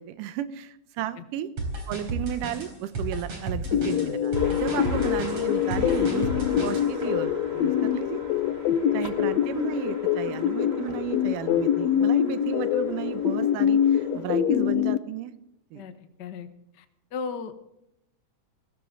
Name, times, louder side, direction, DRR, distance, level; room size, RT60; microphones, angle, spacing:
voice 1, 0.0-1.5 1.9-8.2 8.9-15.3 15.7-15.8, right 11 dB, 85° right, 11 dB, 2.4 m, -34 dB
sound 1, 1.6-6.9, right 2 dB, 45° right, 4.7 m, -32 dB
sound 2, 3.7-15.0, left 10 dB, 70° left, 1.8 m, -25 dB
sound 3, 4.3-14.4, right 2 dB, 25° right, 1.9 m, -44 dB
voice 2, 8.7-9.1 10.1-10.2 15.7-16.5 16.7-16.8 17.1-17.5, left 5 dB, 55° left, 8 dB, 1.2 m, -37 dB
19.0 x 16.0 x 3.8 m, 0.81 s
omnidirectional pair, 3.7 m